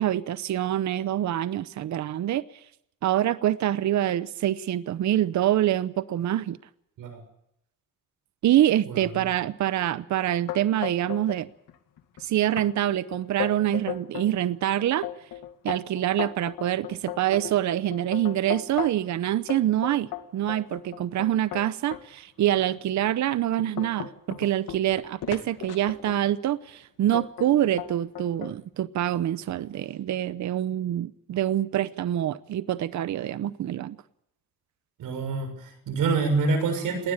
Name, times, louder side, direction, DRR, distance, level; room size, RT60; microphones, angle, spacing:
voice 1, 0.0-2.4 3.0-6.6 8.4-11.5 12.2-15.1 15.6-34.0, right 12 dB, 60° right, 0.8 m, -25 dB
voice 2, 8.9-9.3 35.0-37.1, right 4 dB, 80° right, 7.0 m, -27 dB
sound 1, 10.5-11.4 11.7-12.2 12.6-12.7 13.1-14.3 14.8-19.1 19.5-22.0 22.7-22.8 23.3-26.4 27.1-27.5 27.8-28.5, left 12 dB, 75° left, 2.3 m, -36 dB
20.0 x 19.5 x 8.9 m
cardioid pair, 130°, 33 cm